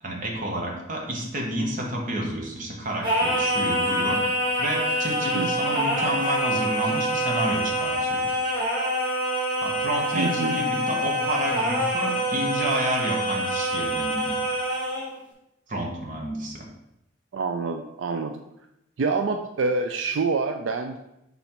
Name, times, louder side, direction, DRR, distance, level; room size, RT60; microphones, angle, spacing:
voice 1, 0.0-4.2 4.6-8.2 9.6-14.4 15.7-16.7, right 1 dB, 45° right, 0 dB, 1.2 m, -30 dB
Singing, 3.0-15.1, equal, 20° right, 2.1 m, -26 dB
voice 2, 10.1-10.6 17.3-18.4 19.0-21.0, right 4 dB, 80° right, 6 dB, 0.4 m, -26 dB
5.6 x 4.0 x 4.4 m, 0.87 s
head